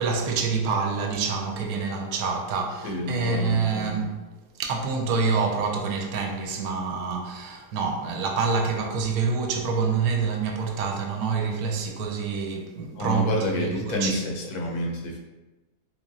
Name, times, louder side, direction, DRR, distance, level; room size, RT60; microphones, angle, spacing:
voice 1, 0.0-4.1 4.6-14.2, right 5 dB, 75° right, 1.0 m, -27 dB
voice 2, 2.8-3.6 13.0-15.2, left 1 dB, 70° left, 1.1 m, -28 dB
3.8 x 3.0 x 2.6 m
omnidirectional pair, 1.7 m